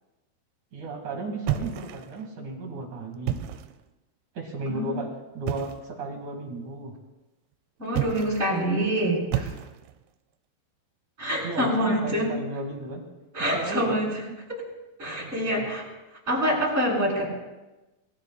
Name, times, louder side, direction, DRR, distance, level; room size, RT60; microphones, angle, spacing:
voice 1, 0.7-3.4 4.3-6.9 11.4-13.0 13.5-14.4 15.2-15.7, right 2 dB, 50° right, 2 dB, 2.9 m, -35 dB
sound 1, 1.5-2.3 3.1-3.8 5.5-5.9 7.9-8.6 9.3-10.0, right 11 dB, 80° right, 2.8 m, -31 dB
voice 2, 7.8-9.5 11.2-12.3 13.3-14.1 15.0-15.9 16.3-17.3, equal, 15° right, -5 dB, 7.0 m, -26 dB
29.0 x 21.0 x 2.4 m, 1.1 s
omnidirectional pair, 5.8 m